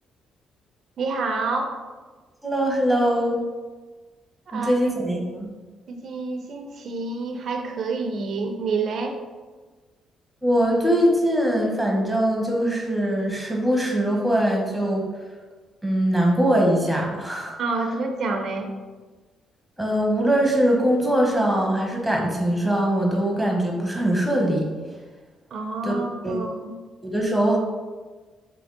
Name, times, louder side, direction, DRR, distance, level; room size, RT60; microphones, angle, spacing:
voice 1, 1.0-1.7 4.5-4.8 5.9-9.2 17.6-18.7 25.5-26.7, right 3 dB, 60° right, 4 dB, 0.4 m, -28 dB
voice 2, 2.4-3.4 4.5-5.5 10.4-15.1 15.8-17.6 19.8-24.7 25.8-25.9 26.2-26.4 27.0-27.6, right 1 dB, ahead, -1 dB, 1.0 m, -22 dB
3.5 x 3.0 x 3.8 m, 1.3 s
cardioid pair, 90°, 0 cm